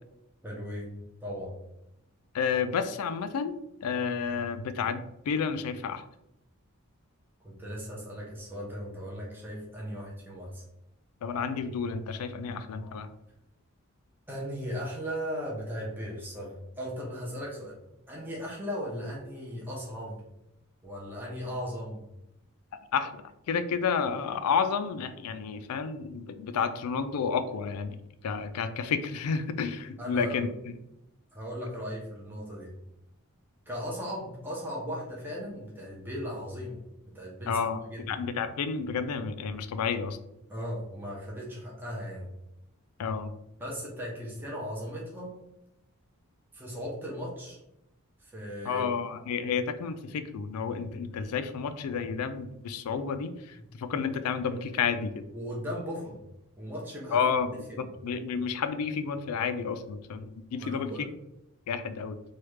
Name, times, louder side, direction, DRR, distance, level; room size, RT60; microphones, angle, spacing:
voice 1, 0.4-0.9 1.2-1.6 7.4-10.6 14.3-17.8 18.1-20.2 20.8-22.1 30.0-30.5 31.3-32.7 33.7-36.8 37.1-38.1 40.5-42.3 43.6-45.3 46.5-47.6 48.2-48.9 55.3-56.2 56.6-57.2 57.7-57.9 60.6-61.1, equal, 10° right, -5 dB, 0.6 m, -37 dB
voice 2, 2.3-3.5 3.8-6.0 11.2-13.1 22.9-28.0 28.2-30.7 37.5-37.8 38.1-40.2 43.0-43.3 48.7-55.2 57.1-57.5 57.8-60.9 61.7-62.2, left 6 dB, 85° left, 10 dB, 0.4 m, -31 dB
3.2 x 2.3 x 3.1 m, 0.85 s
head